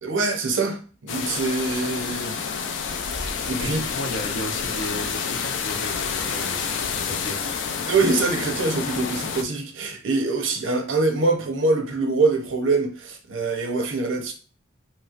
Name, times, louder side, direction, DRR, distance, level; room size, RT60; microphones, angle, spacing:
voice 1, 0.0-3.8 7.8-14.3, right 3 dB, 75° right, 0.7 m, -24 dB
sound 1, 1.1-9.4, left 6 dB, 65° left, 0.4 m, -29 dB
voice 2, 3.7-7.4, left 1 dB, 85° left, 0.8 m, -34 dB
3.1 x 3.0 x 2.4 m
head